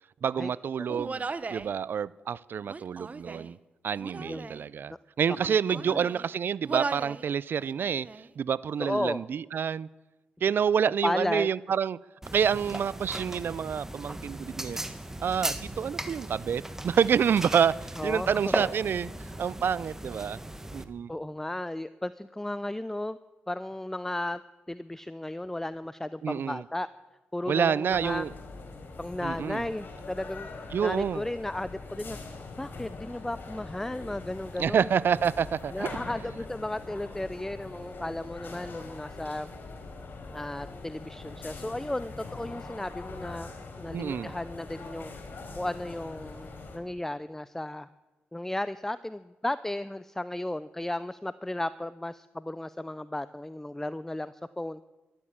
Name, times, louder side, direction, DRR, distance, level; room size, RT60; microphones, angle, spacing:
voice 1, 0.2-3.6 3.8-8.1 8.4-9.9 10.4-12.0 12.3-14.9 15.2-19.1 19.4-20.4 20.7-21.1 26.2-26.6 27.5-28.3 29.2-29.6 30.7-31.2 34.6-36.0 43.9-44.3, right 7 dB, 60° right, 22 dB, 0.4 m, -28 dB
Human voice, 0.9-1.7 2.6-3.5 4.0-4.6 5.3-6.3 6.6-7.2 7.6-8.3, right 4 dB, 40° right, 0.8 m, -37 dB
voice 2, 4.2-4.5 5.7-6.0 8.8-9.2 11.0-11.5 18.0-18.5 21.1-23.2 23.5-24.4 24.7-26.9 27.3-28.3 29.0-30.5 30.8-32.2 32.6-34.9 35.7-39.5 40.3-43.5 43.8-45.1 45.6-47.9 48.3-54.8, left 1 dB, 10° left, 15 dB, 0.5 m, -34 dB
sound 1, 12.2-20.8, right 1 dB, 10° right, 1.5 m, -37 dB
sound 2, 27.9-46.8, left 3 dB, 60° left, 3.9 m, -43 dB
12.5 x 12.5 x 8.8 m, 1.1 s
cardioid pair, 60°, 4 cm